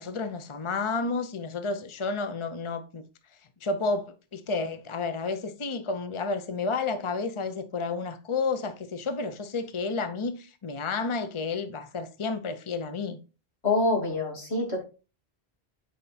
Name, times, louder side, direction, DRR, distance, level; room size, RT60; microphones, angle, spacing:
voice 1, 0.0-3.0 3.6-13.2, left 4 dB, 30° left, 0.9 m, -31 dB
voice 2, 13.6-14.8, left 2 dB, 90° left, 2.9 m, -26 dB
9.4 x 5.3 x 4.2 m
omnidirectional pair, 1.1 m